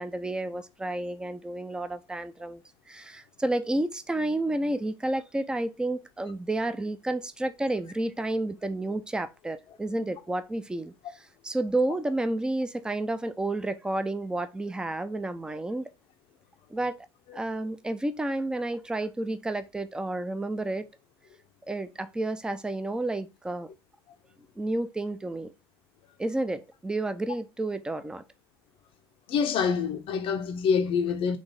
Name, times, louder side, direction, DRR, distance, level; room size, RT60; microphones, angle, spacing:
voice 1, 0.0-2.6 2.9-15.9 16.7-16.9 17.3-20.9 21.7-23.7 24.6-25.5 26.2-28.2, right 2 dB, 5° right, 0.4 m, -31 dB
voice 2, 29.3-31.4, left 6 dB, 45° left, 0.6 m, -26 dB
4.0 x 3.1 x 3.4 m
hypercardioid pair, 80°, 13 cm